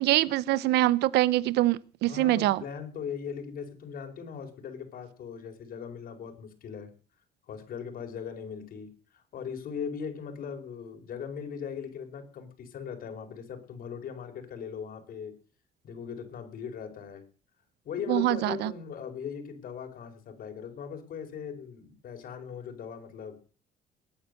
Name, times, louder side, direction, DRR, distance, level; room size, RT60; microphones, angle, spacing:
voice 1, 0.0-2.6 18.1-18.7, right 15 dB, 80° right, 0.7 m, -24 dB
voice 2, 2.1-6.9 7.5-15.3 15.8-17.2 17.8-23.4, left 7 dB, 60° left, 4.6 m, -39 dB
20.5 x 9.0 x 6.6 m
cardioid pair, 110°, 17 cm